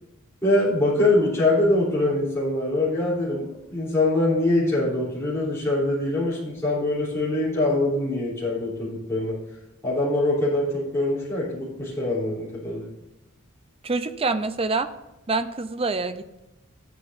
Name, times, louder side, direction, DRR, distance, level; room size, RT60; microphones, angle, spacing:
voice 1, 0.4-9.4 9.8-12.9, left 2 dB, 15° left, -9 dB, 3.4 m, -23 dB
voice 2, 13.8-14.9 15.3-16.4, right 3 dB, 25° right, 10 dB, 0.5 m, -26 dB
14.5 x 8.3 x 2.6 m, 0.97 s
head